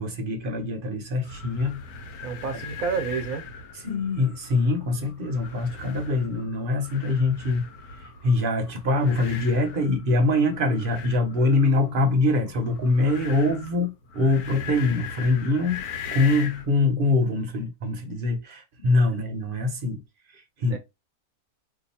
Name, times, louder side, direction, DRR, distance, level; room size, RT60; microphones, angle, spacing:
voice 1, 0.0-1.8 3.8-7.7 8.0-15.8 16.1-20.0 20.3-20.8, left 2 dB, 45° right, 0.9 m, -24 dB
sound 1, 1.2-16.7, left 5 dB, 85° left, 1.2 m, -40 dB
voice 2, 2.2-3.5 20.7-20.8, right 5 dB, 70° right, 1.1 m, -29 dB
2.8 x 2.5 x 4.1 m
omnidirectional pair, 1.5 m